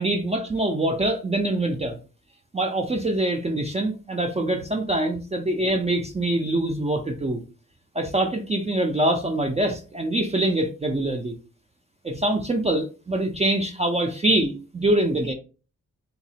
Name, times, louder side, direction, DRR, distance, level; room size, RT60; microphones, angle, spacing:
voice 1, 0.0-2.0 2.5-7.4 8.0-11.4 12.0-15.3, right 1 dB, 20° right, 2 dB, 0.4 m, -24 dB
3.7 x 2.0 x 2.7 m, 0.36 s
wide cardioid pair, 90°, 31 cm